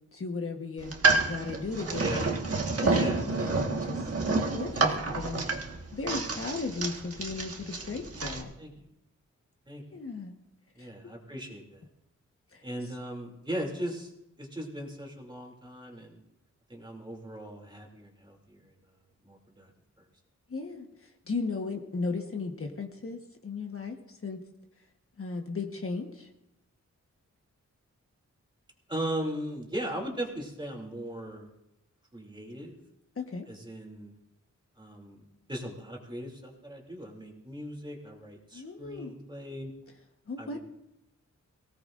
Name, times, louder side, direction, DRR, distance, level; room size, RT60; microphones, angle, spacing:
voice 1, 0.1-0.9 1.2-2.3 2.8-5.5 5.9-8.5 9.9-10.4 10.8-10.9 12.5-12.6 20.5-24.4 25.2-26.3 33.2-33.5 38.5-39.1 40.3-40.6, left 4 dB, 45° left, 3 dB, 1.3 m, -36 dB
sound 1, 0.8-8.4, right 3 dB, 50° right, 1.6 m, -29 dB
voice 2, 2.0-2.3 3.0-3.2 4.7-5.3 6.0-6.4 8.3-8.9 9.7-10.0 10.8-11.9 12.6-14.1 14.4-16.2 16.7-18.8 19.2-19.7 20.0-20.1 28.9-31.5 32.1-32.8 33.5-34.1 34.8-39.7 40.4-40.6, right 1 dB, 15° right, 0 dB, 2.8 m, -38 dB
23.5 x 17.0 x 2.6 m, 0.86 s
wide cardioid pair, 150°, 30 cm